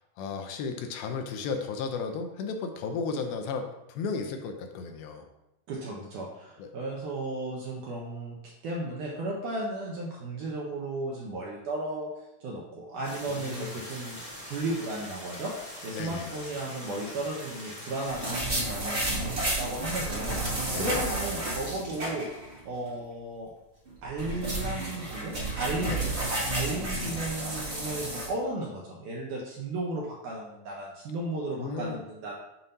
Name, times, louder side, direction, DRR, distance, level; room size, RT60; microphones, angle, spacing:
voice 1, 0.2-5.3 6.6-6.7 13.3-13.8 15.9-16.3 20.7-21.0 25.8-26.1 26.8-27.2 31.6-32.0, left 5 dB, 80° left, 5 dB, 2.3 m, -34 dB
voice 2, 5.7-8.4 8.6-12.1 12.4-22.3 22.7-23.5 24.0-26.1 26.5-32.4, right 2 dB, 75° right, -3 dB, 1.9 m, -35 dB
sound 1, 13.0-18.3, left 1 dB, 25° left, 0.6 m, -43 dB
sound 2, 18.1-22.6 22.9-23.0 23.9-28.3, right 2 dB, 55° right, 0.6 m, -31 dB
7.2 x 2.7 x 5.4 m, 0.92 s
omnidirectional pair, 4.4 m